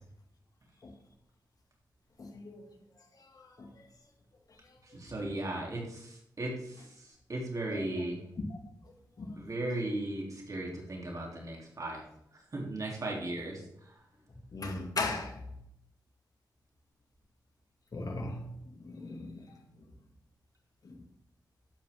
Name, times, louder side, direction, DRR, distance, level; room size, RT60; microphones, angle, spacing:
voice 1, 2.2-2.6 3.3-3.8 5.2-5.3 7.7-7.8 8.5-8.6 9.2-9.5 14.5-15.4 17.9-18.5 18.7-19.5 20.8-21.0, left 3 dB, 55° left, 2 dB, 2.3 m, -38 dB
voice 2, 4.9-8.2 9.4-12.0 12.5-13.9, right 1 dB, 45° right, -1 dB, 3.2 m, -37 dB
12.0 x 8.0 x 3.7 m, 0.77 s
supercardioid pair, 45°, 8 cm